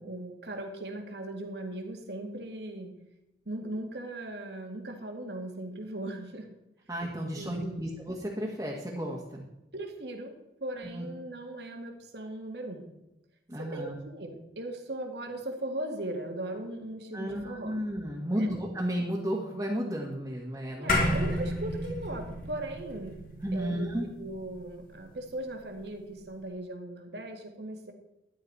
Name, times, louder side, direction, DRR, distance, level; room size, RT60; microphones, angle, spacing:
voice 1, 0.0-2.9 3.5-6.5 7.3-7.9 9.7-12.9 13.6-17.8 18.3-18.5 20.8-23.2 23.5-27.9, right 1 dB, 75° right, 3 dB, 2.1 m, -38 dB
voice 2, 6.9-9.4 10.8-11.1 13.5-14.0 17.1-21.2 23.4-24.1, equal, 20° right, -3 dB, 1.6 m, -33 dB
sound 1, 20.9-25.5, left 1 dB, 50° left, 2.5 m, -32 dB
13.5 x 11.0 x 4.1 m, 0.91 s
head